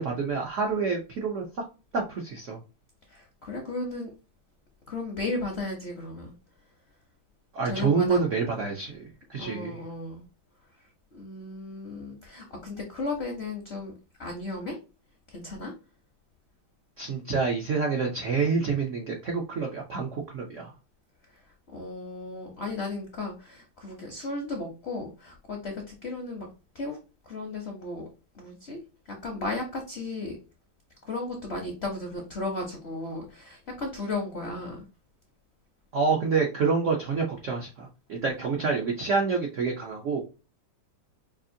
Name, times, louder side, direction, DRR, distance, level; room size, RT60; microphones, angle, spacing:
voice 1, 0.0-1.4 1.9-2.6 7.5-9.0 9.3-9.8 17.0-20.7 35.9-40.2, right 5 dB, 70° right, 0 dB, 0.7 m, -27 dB
voice 2, 3.1-4.1 4.9-6.3 7.6-8.3 9.4-10.2 11.1-13.9 14.2-14.8 15.3-15.7 21.3-21.4 21.7-26.5 26.7-27.0 27.3-28.1 28.3-28.8 29.1-30.4 31.0-34.8, left 2 dB, 55° left, 1 dB, 0.7 m, -35 dB
5.2 x 2.5 x 2.7 m, 0.31 s
omnidirectional pair, 2.2 m